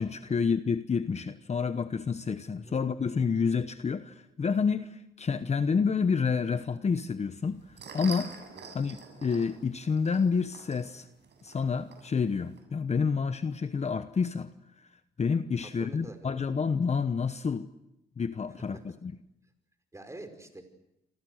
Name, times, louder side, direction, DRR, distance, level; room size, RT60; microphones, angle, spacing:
voice 1, 0.0-8.4 8.7-11.1 11.4-14.5 14.8-14.9 15.2-17.7 18.2-19.1, left 5 dB, 35° left, 1.1 m, -29 dB
sound 1, 7.4-12.6, right 6 dB, 60° right, 7.6 m, -47 dB
voice 2, 15.6-16.5 18.7-19.0 19.9-20.6, right 2 dB, 15° right, 5.2 m, -46 dB
28.5 x 25.0 x 6.5 m
cardioid pair, 90°, 20 cm